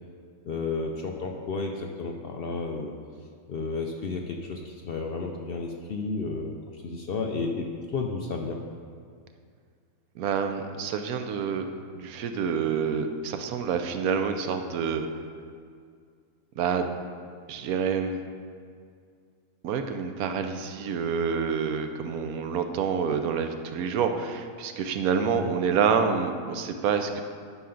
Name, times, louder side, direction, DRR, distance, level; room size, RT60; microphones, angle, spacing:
voice 1, 0.4-2.9 3.5-8.6 25.3-25.5, left 4 dB, 60° left, 2 dB, 0.6 m, -32 dB
voice 2, 10.2-11.7 11.9-15.1 16.6-16.9 17.5-18.2 19.6-27.2, right 6 dB, 90° right, 7 dB, 1.1 m, -27 dB
11.0 x 5.6 x 3.8 m, 2.1 s
omnidirectional pair, 1.5 m